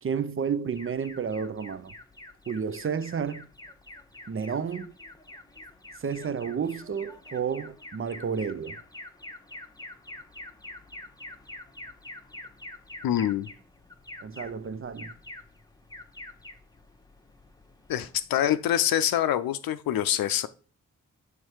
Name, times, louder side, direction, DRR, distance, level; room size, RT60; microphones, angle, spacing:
voice 1, 0.0-1.9 2.5-3.5 4.3-4.9 6.0-8.8 14.2-15.1, right 6 dB, 35° right, 0.5 m, -31 dB
Alarm, 0.7-18.4, left 2 dB, 10° left, 0.9 m, -46 dB
voice 2, 13.0-13.5 17.9-20.5, left 11 dB, 80° left, 0.5 m, -25 dB
6.5 x 3.3 x 4.6 m
cardioid pair, 50°, 35 cm